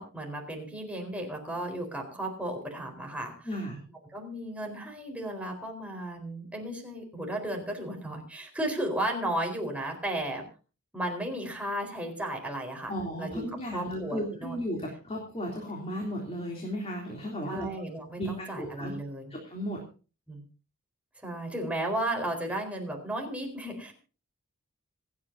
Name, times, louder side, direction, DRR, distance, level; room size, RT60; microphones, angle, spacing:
voice 1, 0.0-3.5 4.1-10.4 10.9-12.9 13.2-13.4 13.7-14.6 17.5-19.3 20.3-20.4 21.2-23.9, right 1 dB, 5° right, 1 dB, 4.4 m, -34 dB
voice 2, 3.4-3.8 12.9-17.7 18.2-18.9 19.3-19.8, equal, 30° left, -1 dB, 3.2 m, -35 dB
26.5 x 9.6 x 2.7 m, 0.35 s
head